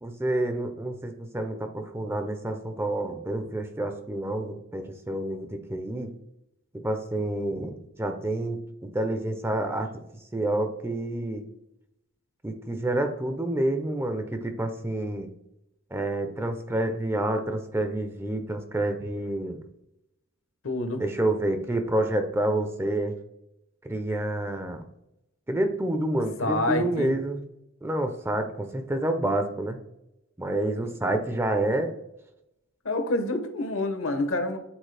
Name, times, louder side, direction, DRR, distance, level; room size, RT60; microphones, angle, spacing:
voice 1, 0.0-6.1 6.7-9.9 10.3-11.5 12.4-15.3 15.9-19.6 21.0-23.2 23.8-24.8 25.5-27.4 27.8-29.8 30.4-31.9, right 1 dB, 10° right, 6 dB, 0.5 m, -28 dB
voice 2, 20.6-21.0 26.4-27.1 32.8-34.6, left 2 dB, 65° left, 7 dB, 0.9 m, -27 dB
8.9 x 4.1 x 3.3 m, 0.86 s
head